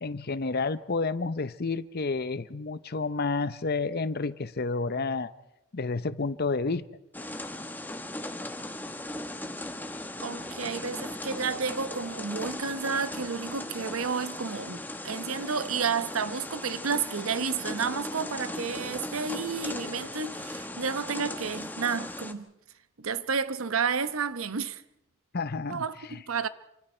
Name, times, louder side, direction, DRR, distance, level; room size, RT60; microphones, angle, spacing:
voice 1, 0.0-5.3 5.7-6.9 25.3-25.8 26.1-26.2, left 3 dB, 50° left, 0.8 m, -30 dB
sound 1, 7.1-22.3, left 1 dB, 10° left, 1.2 m, -38 dB
voice 2, 10.2-22.5 23.0-24.8 25.7-26.0 26.2-26.5, right 5 dB, 80° right, 1.0 m, -31 dB
28.0 x 25.5 x 4.5 m
head